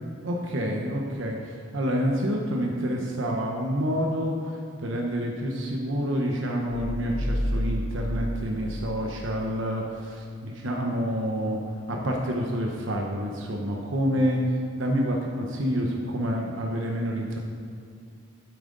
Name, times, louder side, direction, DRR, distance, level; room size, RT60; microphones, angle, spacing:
voice 1, 0.2-11.6 11.9-17.4, equal, 75° right, 0 dB, 0.9 m, -28 dB
sound 1, 6.7-9.4, equal, 5° right, 1.8 m, -30 dB
9.0 x 8.9 x 3.8 m, 2.3 s
head